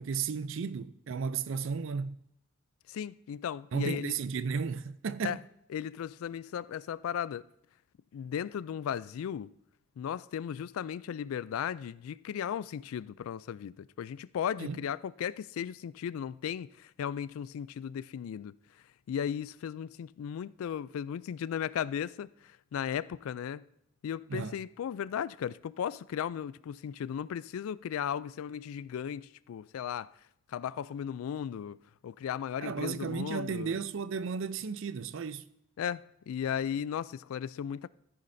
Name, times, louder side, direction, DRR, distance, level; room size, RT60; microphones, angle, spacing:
voice 1, 0.0-2.2 3.7-5.4 14.6-14.8 24.3-24.5 32.6-35.4, right 5 dB, 65° right, 0.4 m, -34 dB
voice 2, 2.9-4.2 5.2-5.4 5.7-7.5 8.1-9.5 10.0-18.5 19.1-23.6 24.0-30.1 30.5-33.8 35.8-37.9, left 8 dB, 85° left, 0.3 m, -36 dB
13.5 x 9.8 x 2.6 m
head